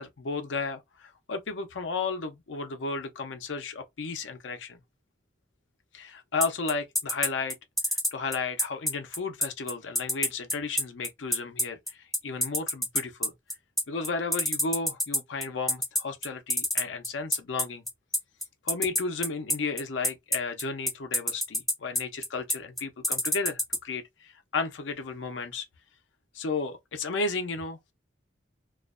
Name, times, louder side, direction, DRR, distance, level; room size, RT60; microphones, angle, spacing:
voice 1, 0.0-4.8 5.9-7.6 8.1-13.3 13.9-17.8 18.6-25.7 26.3-27.9, left 4 dB, 85° left, 0.6 m, -33 dB
sound 1, 6.4-23.8, left 1 dB, ahead, 0.5 m, -26 dB
2.4 x 2.1 x 2.4 m
head